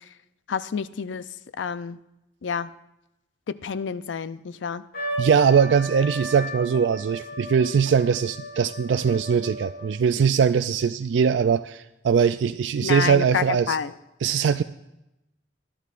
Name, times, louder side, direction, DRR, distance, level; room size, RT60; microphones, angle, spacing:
voice 1, 0.5-1.2 1.6-2.0 2.4-2.7 3.5-4.8 12.8-13.9, left 6 dB, 85° left, 14 dB, 0.5 m, -28 dB
Trumpet, 4.9-9.9, equal, 60° left, 3.7 m, -35 dB
voice 2, 5.2-13.8 14.2-14.6, right 6 dB, 75° right, 10 dB, 0.3 m, -21 dB
21.0 x 12.5 x 2.5 m, 0.91 s
head